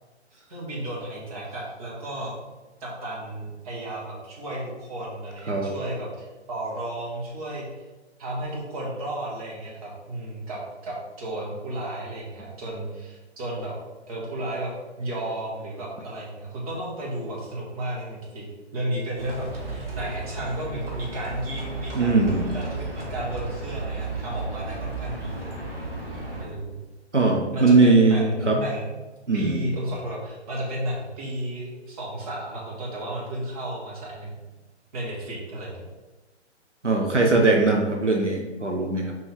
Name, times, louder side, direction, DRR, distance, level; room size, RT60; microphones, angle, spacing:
voice 1, 0.5-2.3 2.8-7.7 8.2-13.7 14.1-18.5 18.7-25.6 26.4-26.8 27.5-28.8 29.3-34.3 34.9-35.8, right 1 dB, 30° right, -4 dB, 2.1 m, -33 dB
Livestock farm animals working animals, 19.2-26.5, right 2 dB, 55° right, 1.9 m, -34 dB
voice 2, 22.0-22.4 27.1-28.6 29.3-29.6 36.8-39.2, right 3 dB, 90° right, 1 dB, 1.2 m, -20 dB
6.2 x 5.3 x 3.6 m, 1.2 s
figure-of-eight pair, 135°, 35 cm